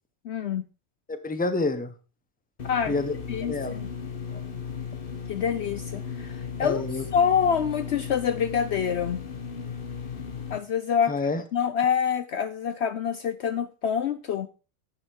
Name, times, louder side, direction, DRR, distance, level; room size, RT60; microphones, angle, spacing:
voice 1, 0.2-0.6 2.6-2.9 3.3-3.9 5.3-6.8 7.1-9.2 10.5-14.5, left 7 dB, 60° left, 11 dB, 0.8 m, -26 dB
voice 2, 1.1-1.9 2.9-3.8 6.6-7.0 11.1-11.4, left 3 dB, 5° left, 10 dB, 0.8 m, -28 dB
sound 1, 2.6-10.6, left 6 dB, 45° left, 1.2 m, -36 dB
9.8 x 8.6 x 4.5 m, 0.33 s
omnidirectional pair, 1.4 m